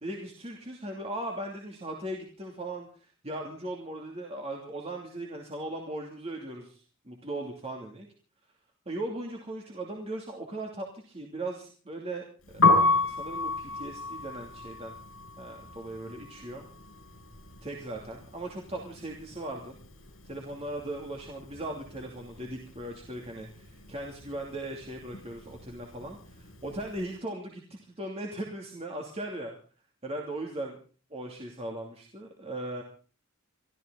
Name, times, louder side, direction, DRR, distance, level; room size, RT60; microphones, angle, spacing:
voice 1, 0.0-8.1 8.9-15.0 15.4-16.6 17.6-19.8 20.2-29.5 30.0-30.8 31.1-32.8, right 1 dB, 30° right, 0 dB, 2.7 m, -38 dB
Piano, 12.5-18.4 18.7-20.3 20.5-27.0, left 3 dB, 75° left, 7.0 m, -29 dB
24.5 x 15.0 x 4.0 m, 0.39 s
head